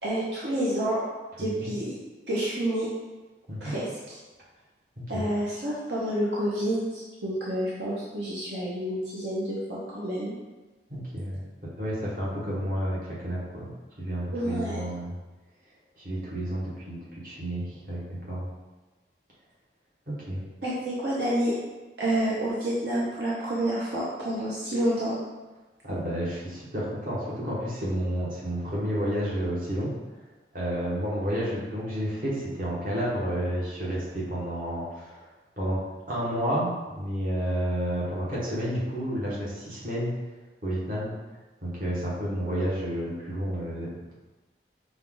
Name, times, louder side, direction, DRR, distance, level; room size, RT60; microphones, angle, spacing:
voice 1, 0.0-1.0 1.4-1.9 2.3-2.9 3.6-4.2 5.1-10.3 14.3-14.8 20.6-21.5 22.0-25.2, right 1 dB, 70° right, -7 dB, 0.9 m, -29 dB
voice 2, 1.4-1.7 3.5-3.7 5.0-5.3 10.9-15.1 16.0-18.5 20.1-20.4 25.8-29.9 30.5-35.2 35.6-35.8 36.1-40.1 40.6-41.1 41.6-44.1, equal, 50° right, -7 dB, 1.4 m, -31 dB
5.4 x 2.4 x 3.8 m, 1.2 s
head